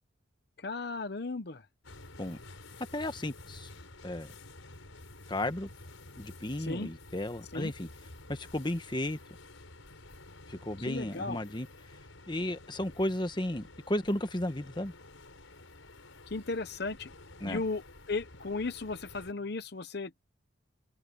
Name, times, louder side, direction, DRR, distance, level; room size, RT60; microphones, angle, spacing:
voice 1, 0.6-1.6 6.6-6.9 7.5-7.7 10.9-11.4 16.3-17.1 17.4-17.8 18.1-20.2, left 3 dB, 55° left, 0.9 m, -35 dB
sound 1, 1.8-19.3, left 2 dB, 90° left, 6.4 m, -51 dB
voice 2, 2.9-3.7 4.0-4.3 5.3-5.7 6.2-7.9 8.3-9.2 10.5-11.7 12.3-14.9 17.4-17.6, left 1 dB, 25° left, 1.2 m, -34 dB
head